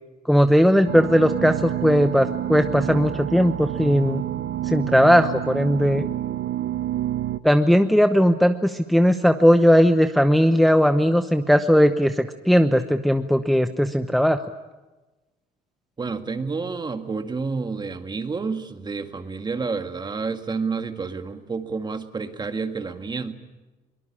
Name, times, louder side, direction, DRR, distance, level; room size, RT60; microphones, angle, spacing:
voice 1, 0.3-4.2 4.6-6.1 7.4-14.4, equal, ahead, 8 dB, 0.9 m, -18 dB
sound 1, 0.9-7.4, right 12 dB, 70° right, 0.9 m, -28 dB
voice 2, 16.0-23.3, right 4 dB, 25° right, 8 dB, 1.8 m, -29 dB
23.0 x 20.0 x 10.0 m, 1.1 s
cardioid pair, 110°, 17 cm